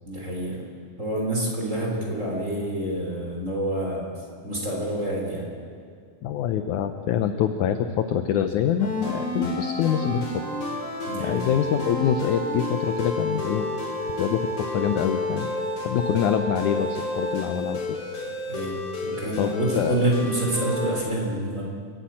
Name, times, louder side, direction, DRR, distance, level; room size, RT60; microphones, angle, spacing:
voice 1, 0.0-0.6 1.0-4.1 4.4-5.5 11.1-11.4 18.5-18.8 19.0-21.7, right 1 dB, 20° right, -2 dB, 3.3 m, -27 dB
voice 2, 6.2-10.3 11.2-13.7 14.2-14.4 14.7-15.5 15.8-17.8 19.4-20.1, left 9 dB, 80° left, 8 dB, 1.7 m, -25 dB
sound 1, 8.8-20.9, left 1 dB, 50° left, 5.1 m, -30 dB
29.5 x 10.0 x 8.6 m, 2.2 s
omnidirectional pair, 4.4 m